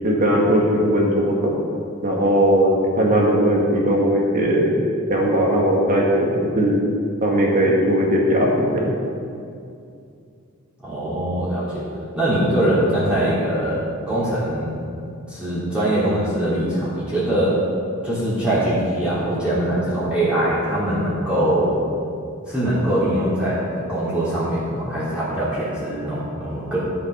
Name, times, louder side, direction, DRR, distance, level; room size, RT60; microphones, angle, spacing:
voice 1, 0.0-1.5 2.0-4.7 5.1-6.8 7.2-8.9, equal, 40° right, -2 dB, 1.9 m, -18 dB
voice 2, 10.8-11.8 12.1-14.8 15.3-17.6 18.0-21.8 22.5-26.8, right 1 dB, 5° right, -11 dB, 2.9 m, -22 dB
12.5 x 5.7 x 5.7 m, 2.4 s
head